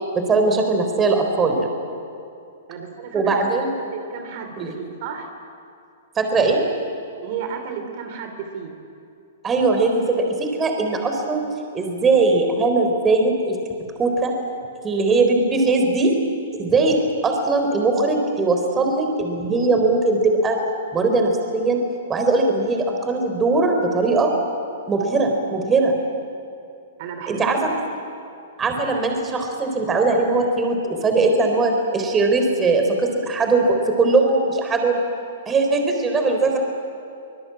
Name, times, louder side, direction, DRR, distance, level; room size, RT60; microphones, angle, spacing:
voice 1, 0.1-1.7 3.1-3.7 4.6-4.7 6.2-6.7 9.4-11.4 11.7-13.6 14.0-14.3 14.8-16.1 16.6-17.0 17.2-20.6 20.9-21.8 22.1-24.3 24.9-26.0 27.3-27.7 28.6-35.0 35.5-36.6, right 3 dB, 15° right, 4 dB, 3.8 m, -20 dB
voice 2, 2.7-3.4 3.9-5.3 7.2-8.7 27.0-27.5, right 7 dB, 50° right, 5 dB, 3.3 m, -33 dB
25.5 x 20.5 x 8.7 m, 2.6 s
hypercardioid pair, 135°, 0 cm